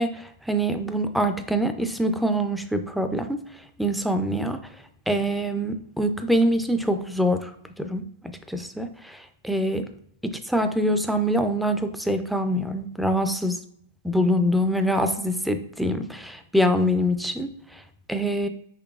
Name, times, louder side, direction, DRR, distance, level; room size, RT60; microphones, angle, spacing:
voice 1, 0.0-3.4 3.8-4.6 5.1-7.5 7.8-9.9 10.2-13.6 14.0-17.8 18.1-18.5, equal, ahead, 8 dB, 0.4 m, -24 dB
5.8 x 3.3 x 2.4 m, 0.71 s
hypercardioid pair, 140°, 0 cm